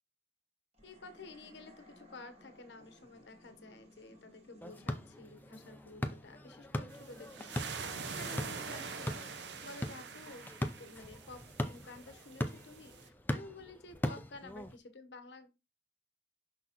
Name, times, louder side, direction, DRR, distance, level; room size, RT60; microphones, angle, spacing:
sound 1, 0.7-12.1, left 1 dB, 35° right, 1.8 m, -62 dB
voice 1, 0.8-15.5, left 3 dB, 80° left, 8 dB, 1.0 m, -52 dB
sound 2, 4.6-14.8, left 1 dB, 10° left, 0.5 m, -41 dB
sound 3, 6.9-13.1, right 5 dB, 80° right, 0.8 m, -45 dB
6.1 x 5.8 x 2.9 m, 0.26 s
head